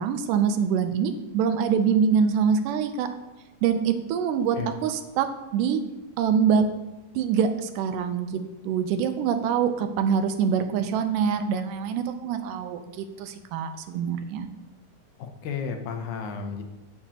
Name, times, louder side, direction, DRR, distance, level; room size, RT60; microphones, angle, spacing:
voice 1, 0.0-3.1 3.6-5.3 5.5-5.8 6.2-6.7 7.2-8.3 8.6-14.5, right 7 dB, 80° right, 8 dB, 2.1 m, -24 dB
voice 2, 15.2-16.6, left 6 dB, 75° left, 5 dB, 2.0 m, -33 dB
8.6 x 7.0 x 2.8 m, 1.0 s
omnidirectional pair, 3.8 m